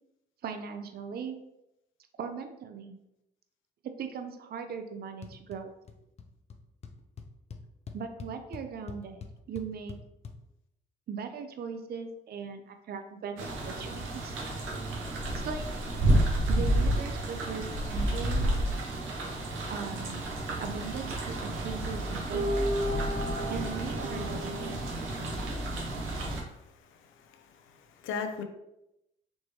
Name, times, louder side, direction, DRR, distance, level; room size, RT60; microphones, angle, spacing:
voice 1, 0.4-1.4 2.2-3.0 4.0-5.7 7.9-9.2 9.5-9.9 11.1-14.4 15.3-15.6 16.5-18.5 19.7-20.2 20.6-22.6 23.5-24.9, right 6 dB, 50° right, 7 dB, 0.5 m, -39 dB
sound 1, 5.2-5.6 5.9-6.3 6.5-6.6 6.8-10.3, left 5 dB, 35° left, 0.5 m, -44 dB
sound 2, 13.4-26.4, right 1 dB, 85° right, 0.9 m, -30 dB
voice 2, 26.9-28.4, left 5 dB, 85° left, 6 dB, 0.5 m, -39 dB
4.2 x 3.1 x 3.1 m, 0.86 s
cardioid pair, 90°, 20 cm